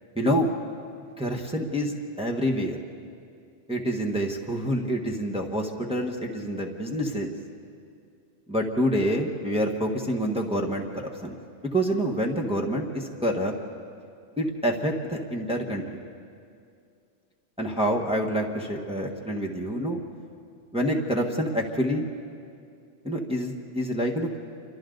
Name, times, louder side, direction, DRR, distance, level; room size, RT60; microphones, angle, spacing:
voice 1, 0.1-0.5 1.2-2.8 3.7-7.3 8.5-10.8 11.2-11.3 11.7-13.5 14.4-16.0 17.6-20.0 20.7-22.1 23.0-24.4, equal, 5° right, 0 dB, 1.4 m, -27 dB
28.5 x 24.0 x 3.9 m, 2.4 s
omnidirectional pair, 1.2 m